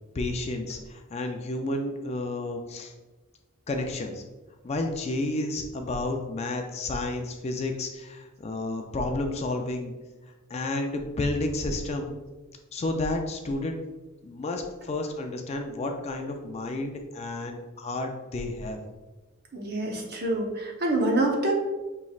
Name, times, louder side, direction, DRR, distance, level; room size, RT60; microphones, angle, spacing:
voice 1, 0.1-2.9 3.7-4.2 4.6-9.9 10.5-12.1 12.7-13.8 14.2-18.8, left 2 dB, 30° left, 4 dB, 0.4 m, -31 dB
voice 2, 19.5-21.5, right 1 dB, 50° right, 1 dB, 0.8 m, -26 dB
5.4 x 3.0 x 2.4 m, 1.2 s
head